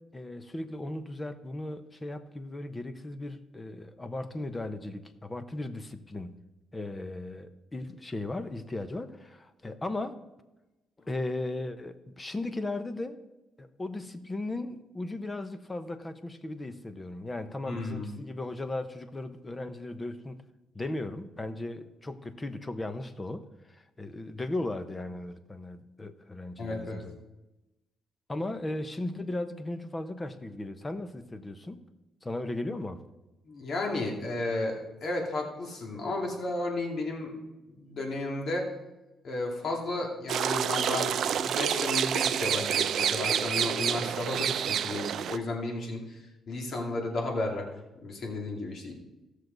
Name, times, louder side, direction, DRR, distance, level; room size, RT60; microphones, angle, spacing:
voice 1, 0.0-6.4 6.7-10.2 11.1-13.2 13.6-20.4 20.7-27.1 28.3-31.9 32.2-33.0, left 2 dB, 20° left, 10 dB, 0.9 m, -37 dB
voice 2, 17.7-18.1 26.6-27.1 33.5-37.3 37.7-38.7 39.2-46.2 46.5-48.9, left 2 dB, 55° left, 1 dB, 2.5 m, -33 dB
sound 1, 40.3-45.4, right 9 dB, 65° right, 0.5 m, -28 dB
16.5 x 6.5 x 4.0 m, 1.0 s
cardioid pair, 90°, 0 cm